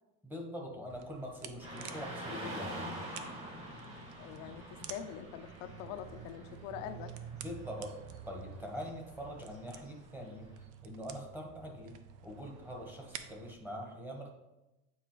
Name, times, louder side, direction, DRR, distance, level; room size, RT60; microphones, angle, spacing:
voice 1, 0.2-3.0 7.3-7.9 8.3-10.5 10.8-12.0 12.2-14.3, equal, 5° right, 0 dB, 1.1 m, -43 dB
sound 1, 0.9-13.6, right 8 dB, 65° right, 0.6 m, -50 dB
Car passing by / Traffic noise roadway noise, 1.6-10.6, right 1 dB, 40° right, 2.4 m, -47 dB
voice 2, 4.2-7.1, left 9 dB, 80° left, 8 dB, 0.6 m, -44 dB
8.6 x 4.6 x 3.0 m, 0.98 s
cardioid pair, 150°, 33 cm